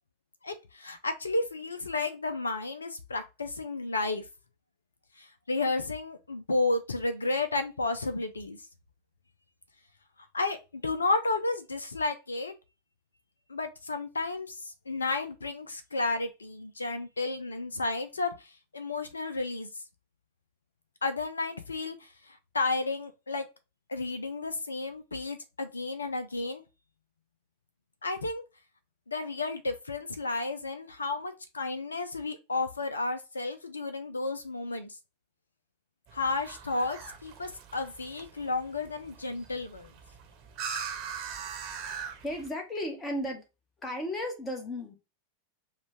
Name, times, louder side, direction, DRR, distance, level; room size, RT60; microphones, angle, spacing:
voice 1, 0.4-4.2 5.2-8.6 10.3-12.5 13.5-19.7 21.0-23.5 23.9-26.6 28.0-28.4 29.1-34.9 36.1-39.9, left 3 dB, 75° left, 0.5 m, -32 dB
sound 1, 36.1-42.5, right 7 dB, 40° right, 1.0 m, -41 dB
voice 2, 41.9-43.4 43.8-44.9, left 1 dB, 20° left, 1.3 m, -35 dB
5.0 x 2.4 x 3.4 m
figure-of-eight pair, 90°, 0 cm